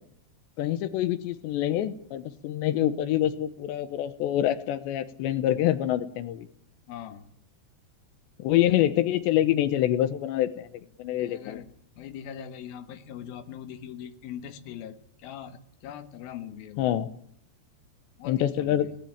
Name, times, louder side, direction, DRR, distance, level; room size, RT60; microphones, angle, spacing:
voice 1, 0.6-6.5 8.4-10.7 11.0-11.6 16.8-17.1 18.3-18.9, left 12 dB, 80° left, 13 dB, 3.3 m, -26 dB
voice 2, 6.9-7.4 11.2-16.9 18.2-19.0, left 9 dB, 65° left, 10 dB, 2.9 m, -41 dB
20.5 x 18.0 x 8.9 m, 0.67 s
omnidirectional pair, 5.0 m